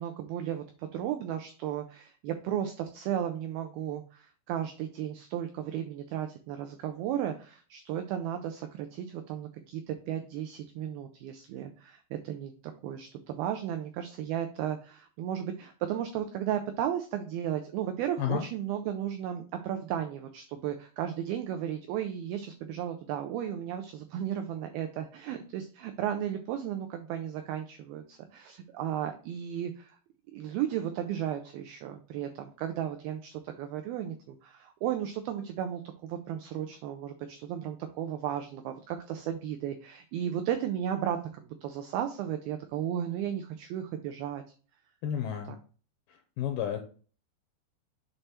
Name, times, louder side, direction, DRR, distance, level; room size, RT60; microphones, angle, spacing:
voice 1, 0.0-30.0 30.3-44.4, right 10 dB, 90° right, 6 dB, 2.1 m, -34 dB
voice 2, 45.0-45.6 46.1-46.8, left 9 dB, 85° left, 5 dB, 2.1 m, -32 dB
7.3 x 3.3 x 4.2 m, 0.39 s
omnidirectional pair, 4.9 m